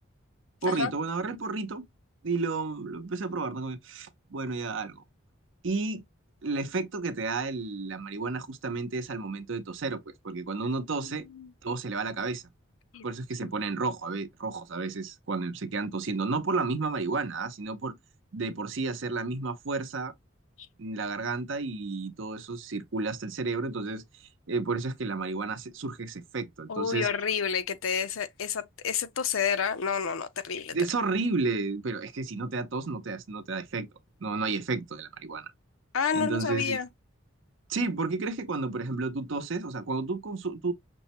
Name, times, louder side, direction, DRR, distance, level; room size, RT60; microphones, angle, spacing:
voice 1, 0.6-1.8 2.2-5.0 5.6-6.0 6.4-11.3 11.6-12.4 13.0-17.9 18.3-20.1 20.8-27.1 30.7-33.9 34.2-35.5 36.1-36.8 37.7-40.7, right 3 dB, 70° right, 0.6 m, -32 dB
voice 2, 26.7-30.8 35.9-36.9, left 6 dB, 85° left, 0.6 m, -29 dB
6.1 x 2.1 x 2.8 m
head